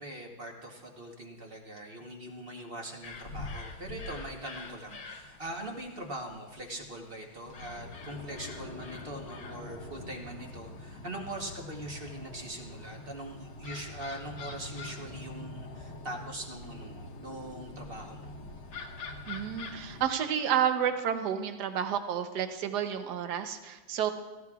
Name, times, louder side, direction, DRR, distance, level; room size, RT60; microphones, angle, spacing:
voice 1, 0.0-18.3, right 1 dB, 35° right, 1 dB, 1.1 m, -42 dB
sound 1, 3.0-20.1, left 3 dB, 60° left, 1.6 m, -44 dB
voice 2, 19.3-24.1, right 8 dB, 60° right, 8 dB, 1.3 m, -30 dB
17.5 x 15.5 x 2.4 m, 1.2 s
omnidirectional pair, 2.2 m